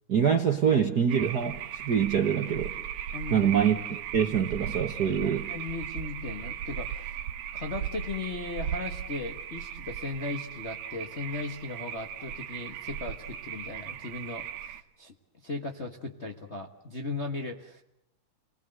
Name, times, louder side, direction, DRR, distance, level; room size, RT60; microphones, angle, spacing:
voice 1, 0.1-2.7 3.3-5.5, right 8 dB, 50° right, 6 dB, 1.2 m, -25 dB
sound 1, 1.1-14.8, right 9 dB, 80° right, 2.5 m, -37 dB
voice 2, 3.1-3.5 5.2-7.2 7.5-15.1 15.4-17.8, left 3 dB, 35° left, 2 dB, 1.1 m, -37 dB
29.5 x 20.0 x 7.8 m, 0.85 s
omnidirectional pair, 3.4 m